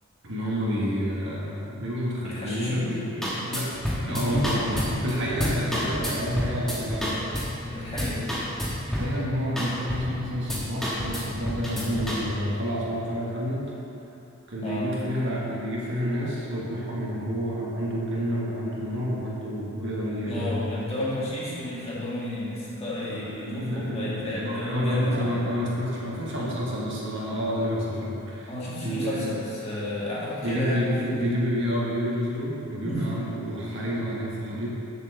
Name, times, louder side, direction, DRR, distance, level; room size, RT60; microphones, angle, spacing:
voice 1, 0.2-3.7 4.0-7.2 8.9-13.6 14.5-20.6 23.0-28.5 28.8-29.3 30.4-34.7, equal, 60° right, -5 dB, 1.5 m, -29 dB
voice 2, 2.2-2.9 4.1-4.8 7.6-8.3 14.6-14.9 20.3-25.3 26.2-26.3 28.5-31.2 32.8-33.2, left 1 dB, 30° left, -8 dB, 1.9 m, -32 dB
sound 1, 2.9-3.0 3.2-7.6 7.9-9.2 9.6-10.2 10.5-12.2, equal, ahead, 1.3 m, -29 dB
7.0 x 4.5 x 6.8 m, 2.8 s
head